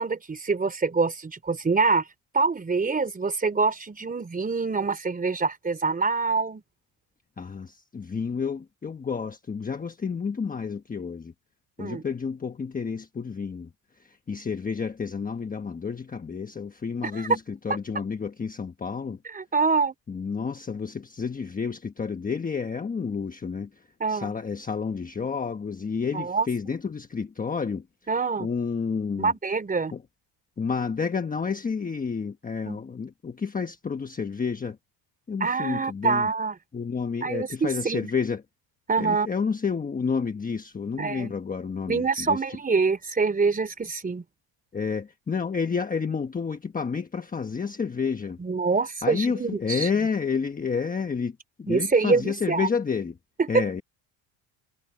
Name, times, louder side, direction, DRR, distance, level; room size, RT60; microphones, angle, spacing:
voice 1, 0.0-2.0 2.3-6.6 11.8-12.0 17.1-17.3 19.3-19.9 24.0-24.3 26.1-26.5 28.1-28.5 29.2-29.9 32.7-32.8 35.4-36.5 37.2-38.0 38.9-39.3 41.0-41.3 41.9-44.2 48.4-49.9 51.7-52.7 53.4-53.6, right 4 dB, 15° right, 4.1 m, -25 dB
voice 2, 7.4-11.3 11.8-19.2 20.1-27.9 28.4-29.3 29.9-30.0 30.6-34.8 35.3-36.3 36.7-38.4 39.0-42.6 44.7-48.4 49.0-53.2 53.5-53.8, left 5 dB, 15° left, 1.2 m, -30 dB
cardioid pair, 145°, 49 cm